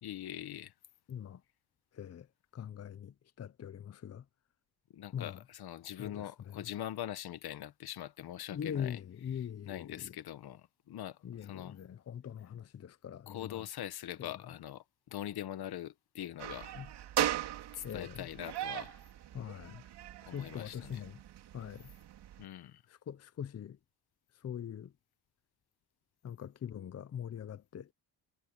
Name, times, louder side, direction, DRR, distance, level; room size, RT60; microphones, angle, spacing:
voice 1, 0.0-0.7 4.9-9.0 9.3-11.8 13.3-16.8 17.7-19.0 20.3-21.0 22.4-22.8, left 12 dB, 70° left, 1.3 m, -43 dB
voice 2, 1.1-1.4 1.9-2.3 2.5-4.2 5.1-5.4 6.0-6.3 6.5-6.6 8.5-10.1 11.2-13.7 14.2-14.3 16.7-16.9 17.8-18.3 19.3-19.8 20.3-21.2 21.5-21.9 22.9-23.8 24.4-24.9 26.2-27.9, left 9 dB, 40° left, 0.7 m, -42 dB
sound 1, 16.4-22.4, right 12 dB, 85° right, 2.6 m, -39 dB
cardioid pair, 120°, 39 cm